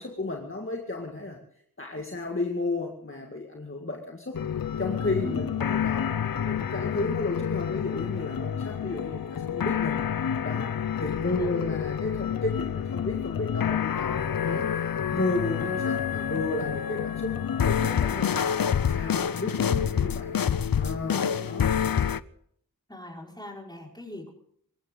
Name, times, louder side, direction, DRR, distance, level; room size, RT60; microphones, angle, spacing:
voice 1, 0.0-1.4 1.8-4.4 4.8-10.0 10.4-14.9 15.1-18.5 18.9-20.3 20.8-21.6, left 2 dB, 35° left, 1 dB, 2.0 m, -33 dB
sound 1, 4.3-22.2, left 8 dB, 75° left, 0.6 m, -28 dB
voice 2, 11.1-11.6 21.1-21.5 22.9-24.3, left 1 dB, 10° left, -1 dB, 5.3 m, -42 dB
24.5 x 15.0 x 3.9 m, 0.67 s
wide cardioid pair, 40°, 35 cm